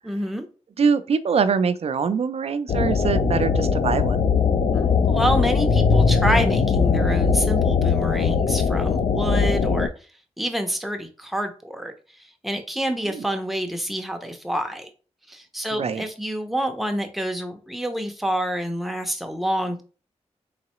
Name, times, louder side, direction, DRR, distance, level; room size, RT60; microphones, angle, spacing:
voice 1, 0.0-0.5 4.7-9.9 10.4-14.9 15.3-19.8, equal, ahead, 0.6 m, -27 dB
voice 2, 0.8-4.2 13.0-13.2 15.7-16.0, right 5 dB, 60° right, 0.4 m, -23 dB
sound 1, 2.7-9.9, left 5 dB, 60° left, 0.4 m, -20 dB
3.8 x 3.1 x 2.9 m
wide cardioid pair, 130°, 12 cm